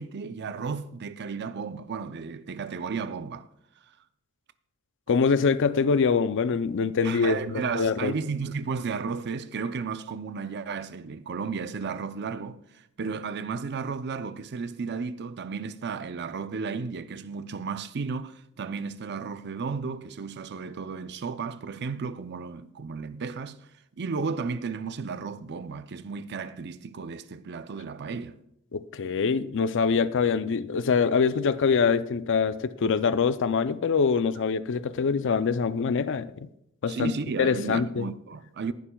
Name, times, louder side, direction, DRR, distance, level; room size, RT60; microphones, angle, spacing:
voice 1, 0.0-3.5 7.0-23.6 24.0-28.3 36.9-38.7, right 5 dB, 50° right, 0.5 m, -33 dB
voice 2, 5.1-7.4 7.7-8.1 28.7-36.5 36.8-37.1 37.4-38.1, left 5 dB, 60° left, 0.5 m, -24 dB
19.0 x 11.5 x 2.3 m
head